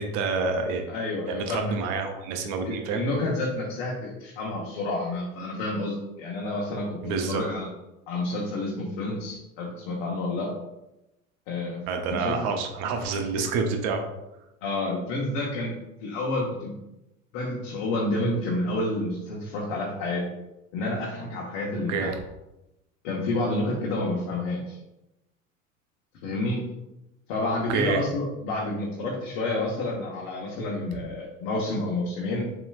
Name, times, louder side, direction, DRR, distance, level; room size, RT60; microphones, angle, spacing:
voice 1, 0.0-0.9 1.3-3.0 7.0-7.4 11.9-14.0 21.9-22.2 27.7-28.0, right 4 dB, 45° right, 5 dB, 0.7 m, -28 dB
voice 2, 0.9-1.7 2.6-7.7 8.1-10.5 11.5-11.8 12.1-12.5 14.6-15.7 16.0-16.7 17.3-20.3 20.7-22.1 23.0-24.8 26.2-26.6 27.3-32.5, left 2 dB, 50° left, -3 dB, 1.1 m, -29 dB
7.0 x 3.0 x 2.4 m, 0.93 s
figure-of-eight pair, 75°, 40 cm